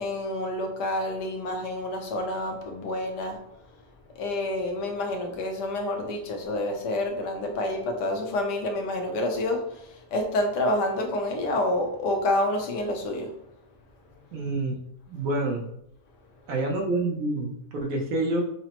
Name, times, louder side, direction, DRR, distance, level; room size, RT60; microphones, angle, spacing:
voice 1, 0.0-3.4 4.2-13.3, left 1 dB, 85° left, 3 dB, 1.3 m, -28 dB
voice 2, 14.3-14.8 15.1-15.7 16.5-18.4, right 2 dB, 65° right, 1 dB, 1.1 m, -27 dB
6.0 x 2.1 x 2.9 m, 0.78 s
omnidirectional pair, 1.8 m